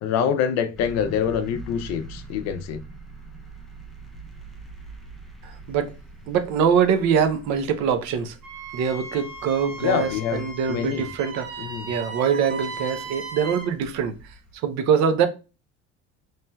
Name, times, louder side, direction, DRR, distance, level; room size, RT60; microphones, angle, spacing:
voice 1, 0.0-2.8 9.8-11.1 11.6-11.9, left 8 dB, 55° left, 0.5 m, -25 dB
sound 1, 0.8-14.5, right 2 dB, ahead, 0.4 m, -44 dB
voice 2, 5.4-5.9 6.3-8.4 8.7-11.5 11.9-14.2 14.6-15.3, right 7 dB, 60° right, 0.6 m, -23 dB
Wind instrument woodwind instrument, 8.4-13.7, right 3 dB, 75° right, 1.4 m, -37 dB
4.2 x 3.2 x 2.2 m
cardioid pair, 160°, 31 cm